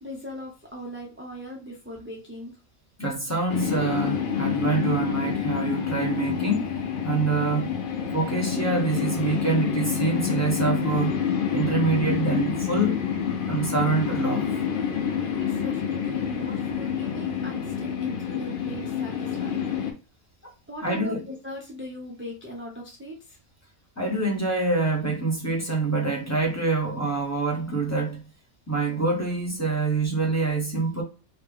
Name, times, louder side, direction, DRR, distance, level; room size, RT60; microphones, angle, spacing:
voice 1, 0.0-2.6 15.4-19.7 20.7-23.4, equal, 15° right, 0.4 m, -39 dB
voice 2, 3.0-6.8 7.0-7.7 8.1-11.2 11.5-13.0 13.5-14.6 20.4-20.5 20.8-21.2 24.0-28.2 28.7-31.0, right 3 dB, 15° left, 0.8 m, -26 dB
sound 1, 3.5-19.9, left 8 dB, 45° left, 0.7 m, -28 dB
3.2 x 2.9 x 3.4 m
omnidirectional pair, 1.5 m